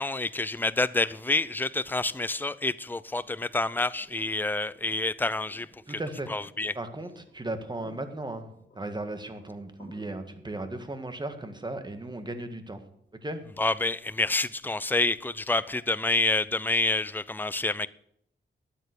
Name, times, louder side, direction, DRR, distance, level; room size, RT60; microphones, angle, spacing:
voice 1, 0.0-6.0 6.3-6.7 13.6-17.9, left 2 dB, 10° left, 0.5 m, -28 dB
sound 1, 0.6-14.5 16.2-16.3, equal, 45° left, 7.1 m, -59 dB
voice 2, 5.9-6.3 6.7-8.5 8.8-12.8 13.2-13.4, right 2 dB, 20° right, 1.8 m, -36 dB
12.5 x 9.1 x 6.6 m
wide cardioid pair, 85°, 20 cm